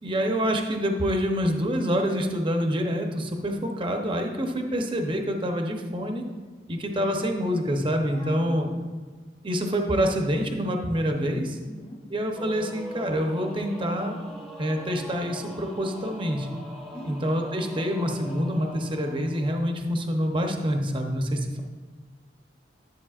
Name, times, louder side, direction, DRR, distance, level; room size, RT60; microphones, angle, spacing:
voice 1, 0.0-6.2 6.7-8.7 9.4-11.6 12.1-14.2 14.6-16.5 17.0-21.6, equal, 30° right, 3 dB, 0.8 m, -26 dB
voice 2, 8.1-8.9 11.6-12.0 16.9-17.2, left 1 dB, 45° left, -8 dB, 1.4 m, -41 dB
Singing / Musical instrument, 12.4-20.1, equal, 5° left, 0.9 m, -42 dB
11.5 x 7.7 x 2.4 m, 1.4 s
head